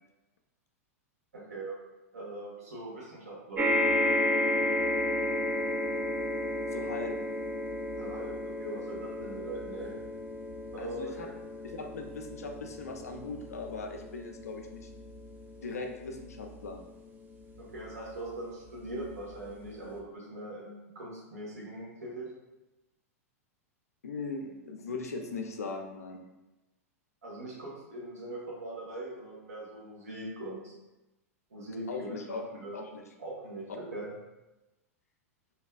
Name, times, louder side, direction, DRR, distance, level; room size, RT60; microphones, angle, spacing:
voice 1, 1.3-1.7 2.1-3.7 8.0-9.9 10.7-11.3 17.6-22.3 27.2-30.7 31.5-32.8 33.2-34.1, right 2 dB, 80° right, -4 dB, 1.0 m, -41 dB
sound 1, 3.6-18.1 18.9-19.0 19.2-19.3, left 1 dB, 20° right, 0.4 m, -33 dB
voice 2, 6.7-7.1 10.8-11.3 11.6-14.9 15.6-16.8 24.0-26.2 31.9-33.0, left 3 dB, 85° left, 4 dB, 0.4 m, -39 dB
2.6 x 2.3 x 2.2 m, 1.0 s
hypercardioid pair, 105°, 8 cm